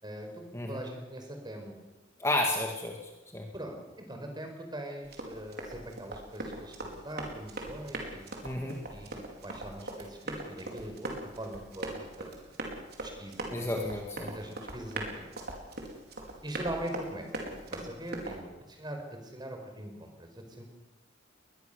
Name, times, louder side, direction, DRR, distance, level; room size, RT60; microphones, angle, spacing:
voice 1, 0.0-1.8 3.5-8.5 8.9-12.3 13.0-14.0 14.3-15.3 16.4-17.3 17.7-20.6, right 1 dB, 20° right, 4 dB, 4.9 m, -42 dB
voice 2, 2.2-3.0 3.3-3.5 8.4-8.8 13.5-14.3, left 1 dB, 15° left, 1 dB, 2.0 m, -31 dB
Run, 5.0-18.4, right 2 dB, 55° right, 4.6 m, -41 dB
22.0 x 21.0 x 6.9 m, 1.1 s
head